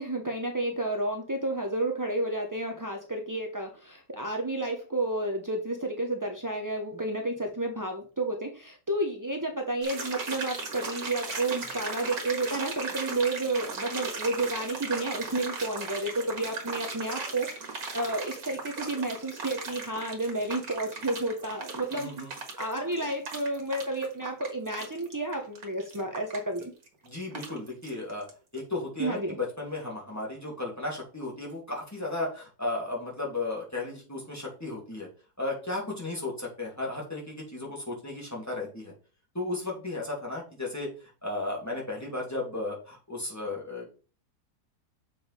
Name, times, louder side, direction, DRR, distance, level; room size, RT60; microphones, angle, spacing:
voice 1, 0.0-22.2 22.6-26.7 29.0-29.4, right 2 dB, 30° right, 2 dB, 0.3 m, -31 dB
sound 1, 9.8-28.3 28.6-28.7, right 4 dB, 60° right, 2.1 m, -37 dB
voice 2, 21.9-22.3 27.0-28.3 28.5-35.1 35.4-38.9 39.3-40.9 41.2-43.9, left 2 dB, 10° left, -3 dB, 2.6 m, -34 dB
7.1 x 4.6 x 4.9 m, 0.37 s
omnidirectional pair, 1.8 m